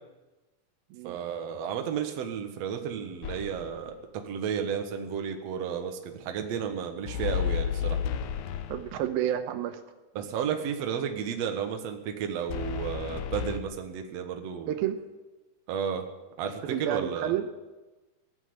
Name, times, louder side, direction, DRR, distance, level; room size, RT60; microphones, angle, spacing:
voice 1, 1.0-4.0 4.2-8.0 10.2-14.8 15.7-16.1 16.4-17.3, right 7 dB, 55° right, 5 dB, 2.0 m, -32 dB
sound 1, 3.2-3.8 7.1-9.1 12.5-13.6, left 8 dB, 80° left, 1.7 m, -32 dB
voice 2, 8.7-9.8 14.7-15.0 16.7-17.4, right 11 dB, 85° right, 8 dB, 2.6 m, -30 dB
18.5 x 7.4 x 9.7 m, 1.1 s
omnidirectional pair, 4.3 m